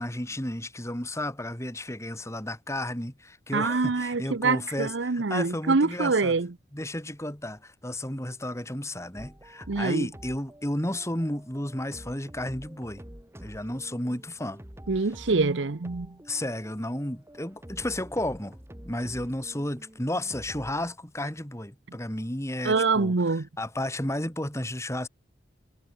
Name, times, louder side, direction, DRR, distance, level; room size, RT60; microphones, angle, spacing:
voice 1, 0.0-6.3 6.7-13.0 13.4-14.6 16.3-18.5 18.8-25.1, left 1 dB, 15° left, 4.2 m, -33 dB
voice 2, 3.5-6.5 9.7-10.1 14.9-16.2 22.6-23.5, right 3 dB, 80° right, 0.8 m, -25 dB
sound 1, 9.2-20.9, equal, 15° right, 2.3 m, -48 dB
head